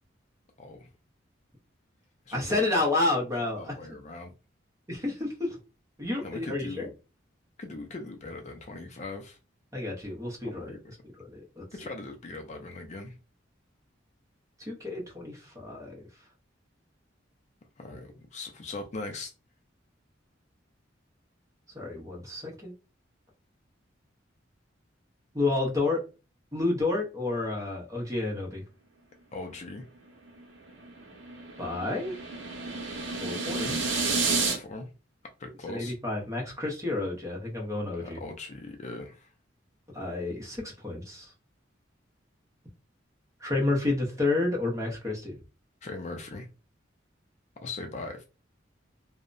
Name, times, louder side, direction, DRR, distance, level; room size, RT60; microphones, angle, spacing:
voice 1, 0.6-0.9 2.3-2.8 3.6-4.3 6.2-6.9 7.6-9.4 10.4-10.8 11.7-13.2 17.8-19.3 29.3-29.9 33.5-33.8 34.4-34.9 35.4-35.9 38.0-39.3 45.8-46.5 47.6-48.2, left 2 dB, 35° left, 0.4 m, -40 dB
voice 2, 2.3-3.7 4.9-5.6 6.0-6.9 9.7-11.6 14.6-16.0 21.7-22.7 25.3-26.0 26.5-28.6 31.6-32.1 33.2-33.7 35.7-38.2 39.9-41.3 43.4-45.4, left 2 dB, 15° right, 0.8 m, -30 dB
sound 1, 30.3-34.6, right 4 dB, 80° right, 0.7 m, -31 dB
2.7 x 2.1 x 2.5 m
head